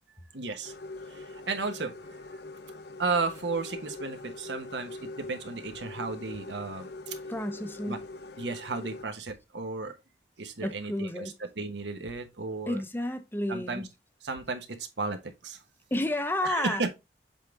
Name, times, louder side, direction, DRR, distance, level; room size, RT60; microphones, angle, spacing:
voice 1, 0.3-0.7 1.1-2.0 2.3-2.4 3.0-7.1 7.9-8.0 8.4-10.0 10.4-12.8 13.5-13.8 14.2-15.6 16.4-16.9, right 3 dB, 80° right, 1.2 m, -34 dB
sound 1, 0.6-9.1, left 2 dB, 60° left, 0.6 m, -43 dB
voice 2, 7.3-8.0 10.6-11.3 12.7-13.9 15.9-16.8, left 1 dB, 10° left, 0.6 m, -31 dB
7.4 x 3.6 x 3.6 m
head